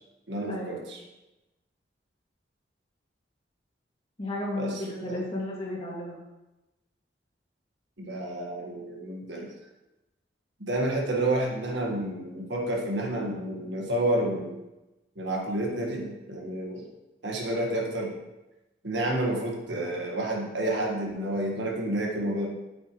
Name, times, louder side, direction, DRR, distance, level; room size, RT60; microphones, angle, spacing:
voice 1, 0.3-1.0 4.6-5.2 8.0-9.5 10.6-14.6 15.2-16.9 17.2-18.1 18.8-22.5, right 1 dB, 80° right, -1 dB, 1.8 m, -30 dB
voice 2, 4.2-6.1, left 1 dB, 30° left, -5 dB, 2.3 m, -33 dB
9.0 x 8.4 x 3.2 m, 1.0 s
head